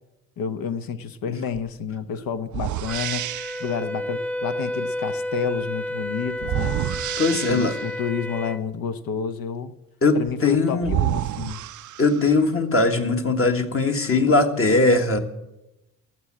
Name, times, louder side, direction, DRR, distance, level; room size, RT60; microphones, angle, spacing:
voice 1, 0.4-3.3 3.6-6.8 7.3-9.7 10.1-11.6, left 6 dB, 55° left, 11 dB, 1.0 m, -29 dB
sound 1, 1.6-1.7 2.5-3.7 6.4-8.0 10.3-10.4 10.8-12.4, right 12 dB, 45° right, 0.5 m, -29 dB
Wind instrument woodwind instrument, 2.9-8.6, left 1 dB, 5° left, 0.5 m, -31 dB
voice 2, 7.2-7.7 10.0-10.9 12.0-15.2, left 3 dB, 30° left, 4 dB, 1.6 m, -20 dB
12.5 x 7.6 x 8.7 m, 0.96 s
hypercardioid pair, 55°, 42 cm